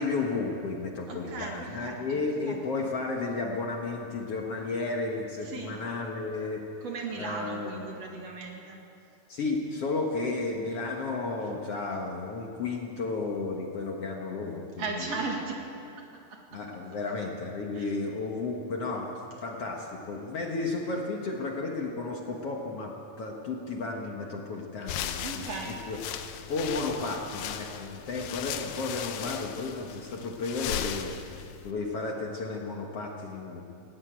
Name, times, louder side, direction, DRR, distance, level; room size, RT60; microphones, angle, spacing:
voice 1, 0.0-6.6 7.2-7.8 9.3-15.2 16.5-19.1 19.4-26.0 26.5-33.6, left 3 dB, 55° left, 0 dB, 2.1 m, -33 dB
voice 2, 1.1-2.2 2.4-2.6 5.4-5.8 6.8-8.8 14.8-15.6 17.7-18.0 25.2-25.8, right 4 dB, 50° right, 0 dB, 2.9 m, -36 dB
sound 1, 24.8-31.7, left 9 dB, 75° left, 2.5 m, -37 dB
18.0 x 17.5 x 9.0 m, 2.8 s
omnidirectional pair, 4.0 m